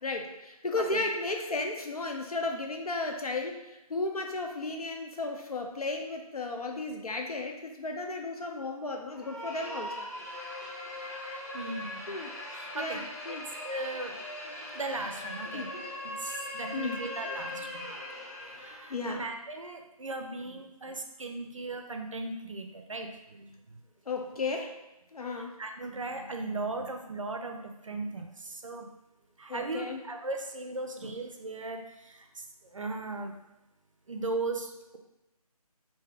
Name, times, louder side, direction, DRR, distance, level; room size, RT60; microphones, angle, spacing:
voice 1, 0.0-10.1 12.1-12.3 12.7-13.5 15.5-15.8 16.7-17.0 18.9-19.2 24.1-24.8 25.1-25.6 29.5-30.0, left 3 dB, 70° left, 3 dB, 0.7 m, -34 dB
sound 1, 9.1-19.0, left 1 dB, 25° left, 0.8 m, -40 dB
voice 2, 11.5-12.1 12.5-13.0 13.6-14.1 14.7-15.7 16.0-17.9 18.5-23.5 25.6-28.9 29.4-32.4 32.7-33.3 34.1-35.0, right 2 dB, 55° right, 4 dB, 0.5 m, -37 dB
3.4 x 2.7 x 3.3 m, 0.96 s
figure-of-eight pair, 170°, 20 cm